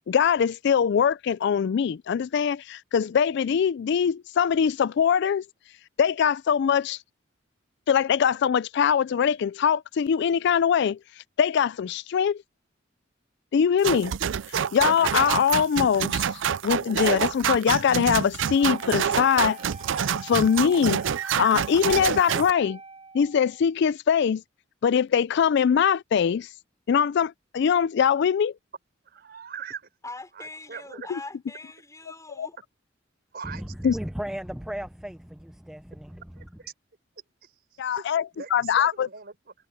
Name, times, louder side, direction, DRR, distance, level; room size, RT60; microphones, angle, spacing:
voice 1, 0.1-5.4 6.0-7.0 7.9-11.0 11.4-12.4 13.5-14.1 14.7-16.3 16.6-19.6 20.2-22.8 23.1-24.4 24.8-26.5 26.9-28.5 32.4-32.5 33.8-33.9 37.8-38.2 38.5-39.1, left 7 dB, 60° left, 0.3 m, -22 dB
sound 1, 13.8-22.5, right 8 dB, 70° right, 0.4 m, -27 dB
Wind instrument woodwind instrument, 18.5-23.6, right 3 dB, 35° right, 1.4 m, -45 dB
voice 2, 29.0-29.8 30.4-31.1 33.3-33.9 36.4-36.5 37.4-38.1 38.3-39.5, right 6 dB, 55° right, 4.3 m, -41 dB
voice 3, 30.0-32.6, left 2 dB, 15° left, 3.9 m, -42 dB
voice 4, 33.4-36.5, equal, 5° right, 0.5 m, -36 dB
head